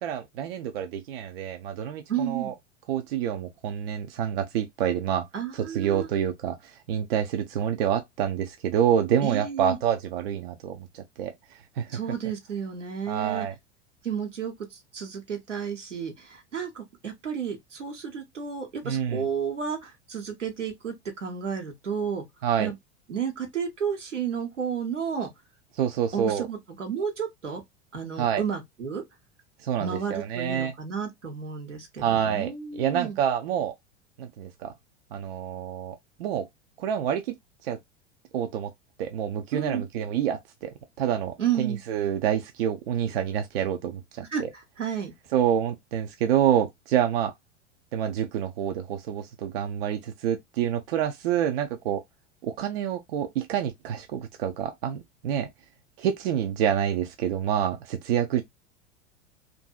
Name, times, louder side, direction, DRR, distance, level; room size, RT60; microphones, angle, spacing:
voice 1, 0.0-2.5 2.9-5.3 5.5-11.3 11.8-12.0 13.1-13.5 18.8-19.2 22.4-22.7 25.7-26.5 28.2-28.4 29.6-30.7 32.0-33.7 34.2-34.7 35.1-36.5 36.8-37.3 37.6-37.8 38.3-38.7 39.0-40.7 41.0-44.5 45.3-47.3 47.9-52.0 52.4-55.5 56.0-58.4, right 9 dB, 55° right, 0.5 m, -27 dB
voice 2, 2.1-2.5 5.3-6.1 9.2-9.8 11.9-13.5 14.0-22.2 22.6-22.7 23.1-25.3 26.1-27.6 27.9-29.0 29.8-33.2 39.5-39.8 41.4-41.8 44.3-44.4 44.8-45.1, right 7 dB, 80° right, 1.0 m, -32 dB
2.6 x 2.5 x 2.2 m
figure-of-eight pair, 85°, 36 cm